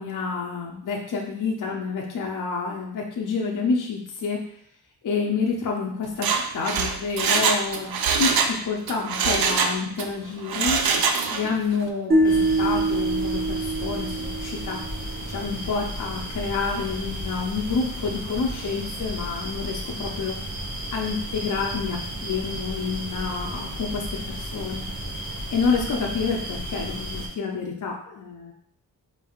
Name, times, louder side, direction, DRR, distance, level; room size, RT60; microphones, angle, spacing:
voice 1, 0.0-4.4 5.0-10.8 11.3-14.8 15.3-20.4 20.9-24.8 25.5-28.5, left 5 dB, 55° left, -1 dB, 0.6 m, -28 dB
Mechanisms, 6.1-8.6 8.9-10.1 10.5-11.5 11.8-11.9, right 5 dB, 70° right, 0.5 m, -23 dB
sound 1, 12.1-15.3, right 2 dB, 25° right, 0.6 m, -24 dB
sound 2, 12.2-27.3, right 1 dB, 50° right, 1.2 m, -34 dB
4.3 x 3.2 x 2.3 m, 0.68 s
wide cardioid pair, 130°, 38 cm